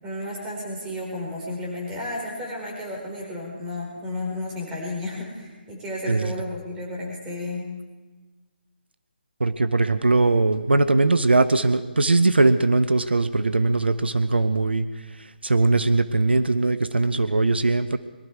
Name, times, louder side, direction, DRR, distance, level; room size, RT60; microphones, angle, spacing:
voice 1, 0.0-7.6, left 1 dB, 15° right, -3 dB, 4.7 m, -32 dB
voice 2, 9.4-18.0, right 3 dB, 85° right, 12 dB, 0.8 m, -20 dB
22.0 x 13.5 x 4.8 m, 1.3 s
figure-of-eight pair, 150°, 6 cm